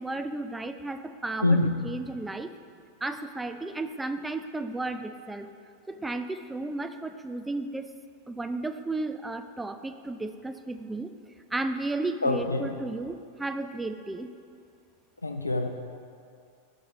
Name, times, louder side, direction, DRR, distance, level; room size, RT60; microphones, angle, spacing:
voice 1, 0.0-1.6 1.8-2.5 3.0-5.5 5.9-7.9 8.3-11.1 11.5-14.3, right 2 dB, 10° right, 9 dB, 0.4 m, -33 dB
voice 2, 1.4-1.8 12.2-12.7 15.2-15.7, left 2 dB, 80° left, 5 dB, 0.4 m, -25 dB
12.5 x 4.8 x 4.0 m, 2.4 s
figure-of-eight pair, 90°, 0 cm